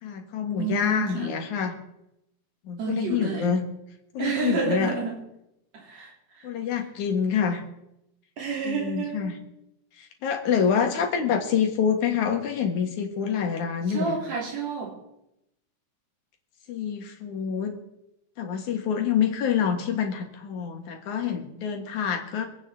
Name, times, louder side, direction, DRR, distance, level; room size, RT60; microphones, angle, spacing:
voice 1, 0.0-1.8 2.6-3.6 4.1-4.9 6.4-7.6 8.7-9.4 10.0-14.1 16.7-17.8 18.4-22.5, left 7 dB, 85° left, 4 dB, 3.1 m, -26 dB
voice 2, 0.6-1.3 2.8-3.5 4.2-5.2 5.7-6.5 8.4-9.4 13.9-15.0, right 5 dB, 65° right, -2 dB, 4.4 m, -30 dB
25.5 x 9.3 x 3.8 m, 0.85 s
omnidirectional pair, 3.3 m